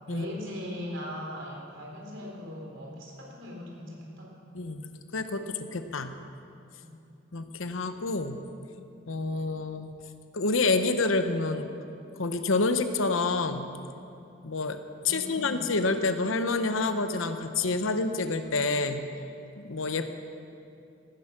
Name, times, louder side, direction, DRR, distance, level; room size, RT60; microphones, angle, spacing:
voice 1, 0.1-4.3 6.8-6.9 15.0-15.7, left 1 dB, 65° right, -1 dB, 3.8 m, -39 dB
voice 2, 4.5-6.2 7.3-8.4 9.1-9.9 10.3-11.7 12.2-13.7 14.4-14.8 15.0-19.1 19.6-20.1, left 3 dB, 80° left, 9 dB, 0.9 m, -28 dB
18.0 x 11.0 x 6.0 m, 2.6 s
head